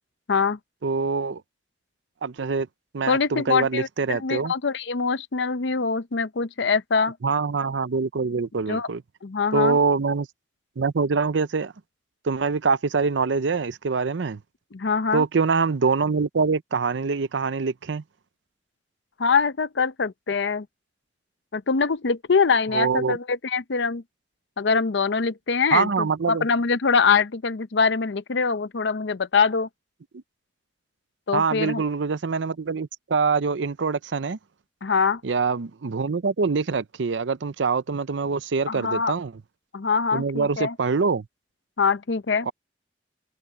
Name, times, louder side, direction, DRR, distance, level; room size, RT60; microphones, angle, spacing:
voice 1, 0.3-0.6 3.1-7.2 8.7-8.9 9.2-9.8 14.7-15.2 19.2-20.7 21.5-24.0 24.6-29.7 31.3-31.8 34.8-35.2 38.7-39.1 39.7-40.7 41.8-42.5, left 5 dB, 75° left, 0.7 m, -23 dB
voice 2, 0.8-1.4 2.2-2.7 2.9-4.5 7.2-9.0 9.5-10.3 10.8-11.7 12.2-14.4 15.1-18.0 22.7-23.2 25.7-26.5 31.3-34.4 35.2-39.3 40.1-41.2 42.5-42.6, right 4 dB, 85° right, 0.6 m, -24 dB
head